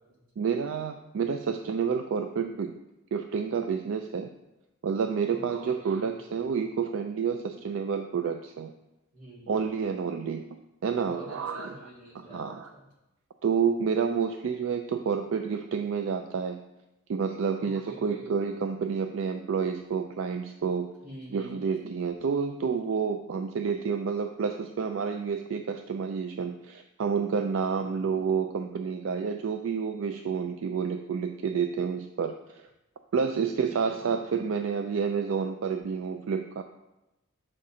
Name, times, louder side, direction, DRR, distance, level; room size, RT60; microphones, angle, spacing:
voice 1, 0.4-2.7 3.1-4.3 4.8-8.7 9.5-10.4 10.8-11.7 12.3-12.7 13.4-16.6 17.1-20.9 21.3-32.6 33.1-36.6, right 6 dB, 65° right, 6 dB, 0.4 m, -29 dB
voice 2, 5.3-6.2 9.1-10.1 11.0-12.9 17.6-18.3 21.0-21.7 27.8-28.1 33.5-34.0, equal, 40° right, -5 dB, 1.9 m, -48 dB
6.4 x 4.3 x 4.8 m, 0.95 s
head